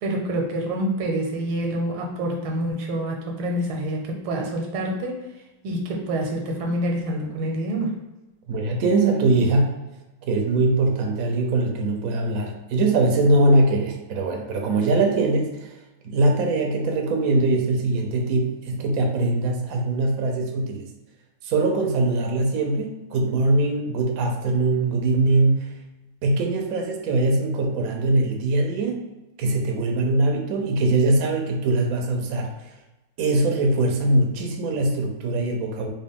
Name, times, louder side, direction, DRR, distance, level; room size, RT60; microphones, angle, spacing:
voice 1, 0.0-5.2 5.6-8.0, right 1 dB, 90° right, 1 dB, 1.6 m, -27 dB
voice 2, 8.5-9.8 10.3-15.6 16.0-20.8 21.4-25.7 26.2-29.0 29.4-32.5 33.2-35.9, right 2 dB, 70° right, 1 dB, 0.8 m, -22 dB
3.9 x 2.3 x 3.6 m, 1.0 s
omnidirectional pair, 2.3 m